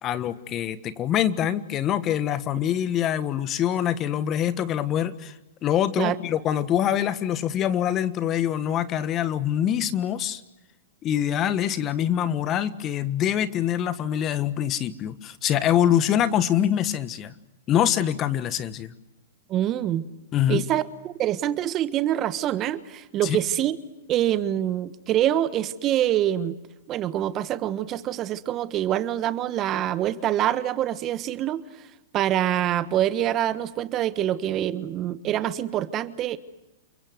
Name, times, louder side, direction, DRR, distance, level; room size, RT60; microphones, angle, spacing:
voice 1, 0.0-5.3 5.6-10.4 11.0-17.3 17.7-18.9 20.3-20.6 23.2-23.4, left 10 dB, 30° left, 14 dB, 1.4 m, -24 dB
voice 2, 19.5-20.1 20.5-23.8 24.1-26.6 26.9-31.6 32.1-36.4, right 12 dB, 35° right, 14 dB, 1.3 m, -25 dB
29.0 x 23.0 x 7.9 m, 0.97 s
hypercardioid pair, 110°, 0 cm